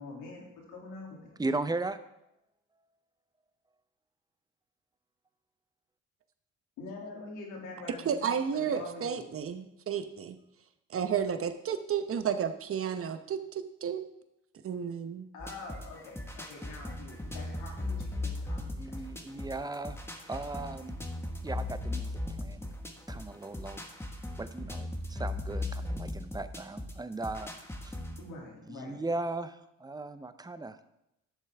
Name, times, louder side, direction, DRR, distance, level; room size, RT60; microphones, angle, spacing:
voice 1, 0.0-1.3 6.8-9.2 15.3-18.6 28.2-29.1, left 3 dB, 85° left, -1 dB, 2.6 m, -45 dB
voice 2, 1.4-2.0 18.5-20.0 20.3-21.0 21.4-22.7 23.1-23.8 24.4-28.0 28.7-30.8, right 2 dB, 15° right, 12 dB, 0.6 m, -37 dB
voice 3, 8.0-10.4 10.9-14.0 14.6-15.3, right 7 dB, 45° right, 10 dB, 0.9 m, -32 dB
sound 1, 15.4-28.2, left 2 dB, 10° left, 1.4 m, -38 dB
11.5 x 7.1 x 3.5 m, 0.86 s
supercardioid pair, 75°, 30 cm